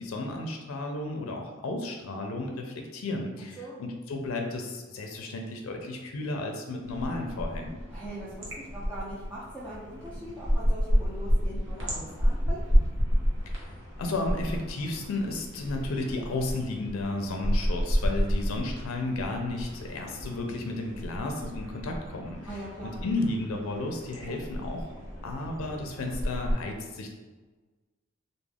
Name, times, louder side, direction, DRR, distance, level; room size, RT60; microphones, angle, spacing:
voice 1, 0.0-7.8 13.5-13.7 14.0-22.4 22.8-24.8 25.2-27.1, left 2 dB, 80° left, 3 dB, 0.4 m, -33 dB
sound 1, 6.8-26.5, equal, 60° right, 0.7 m, -31 dB
voice 2, 7.9-12.6 22.5-23.0, right 1 dB, 10° right, -10 dB, 0.5 m, -41 dB
2.3 x 2.1 x 3.3 m, 1.3 s
head